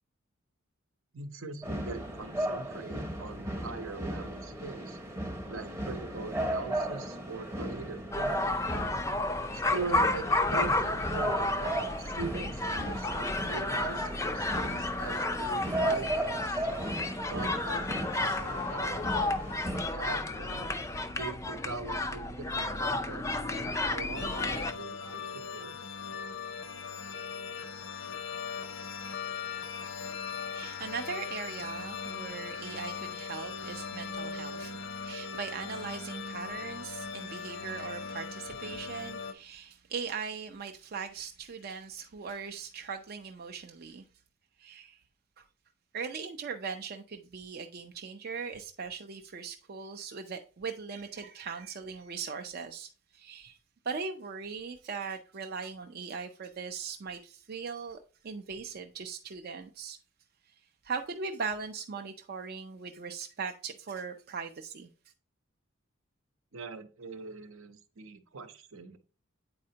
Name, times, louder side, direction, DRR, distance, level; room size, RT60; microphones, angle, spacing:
voice 1, 1.1-5.0 5.5-8.6 9.5-11.7 12.0-16.6 17.2-19.2 19.8-20.7 21.1-25.7 66.5-69.0, right 4 dB, 75° right, 0.8 m, -42 dB
sound 1, 1.6-19.8, right 1 dB, 15° right, 0.7 m, -36 dB
sound 2, 8.1-24.7, left 2 dB, 15° left, 0.4 m, -32 dB
sound 3, 24.1-39.3, left 5 dB, 65° left, 0.6 m, -39 dB
voice 2, 30.5-44.0 44.6-45.0 45.4-45.5 45.9-53.6 53.8-60.0 60.8-64.9, right 5 dB, 45° right, 0.4 m, -39 dB
8.6 x 4.2 x 2.8 m
head